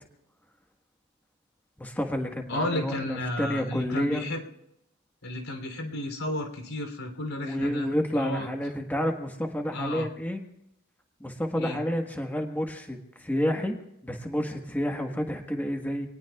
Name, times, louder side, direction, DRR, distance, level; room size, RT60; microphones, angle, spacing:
voice 1, 1.8-4.3 7.4-10.4 11.2-16.1, equal, 10° left, 3 dB, 1.4 m, -30 dB
voice 2, 2.5-4.4 5.2-8.5 9.7-10.1 11.6-11.8, left 1 dB, 85° left, 4 dB, 3.2 m, -33 dB
27.0 x 19.5 x 2.4 m, 0.81 s
head